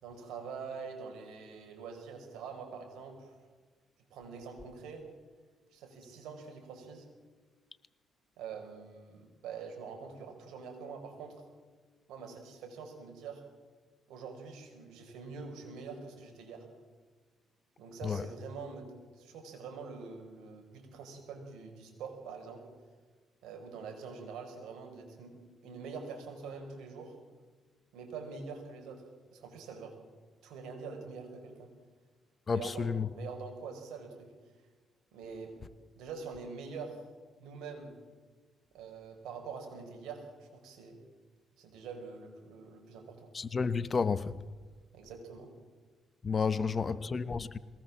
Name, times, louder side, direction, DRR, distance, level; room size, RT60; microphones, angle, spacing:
voice 1, 0.0-3.3 4.1-5.1 5.7-7.1 8.4-11.4 12.1-13.4 14.1-16.7 17.8-22.7 23.4-27.2 27.9-29.0 29.3-30.0 30.4-31.7 32.5-34.3 35.1-35.6 36.0-37.0 37.4-37.9 38.7-41.0 41.6-43.3 44.9-45.5 46.6-47.1, right 5 dB, 85° right, 5.2 m, -45 dB
voice 2, 32.5-33.1 43.3-44.4 46.2-47.6, left 5 dB, 35° left, 0.9 m, -31 dB
22.5 x 18.5 x 7.5 m
cardioid pair, 90°, 0 cm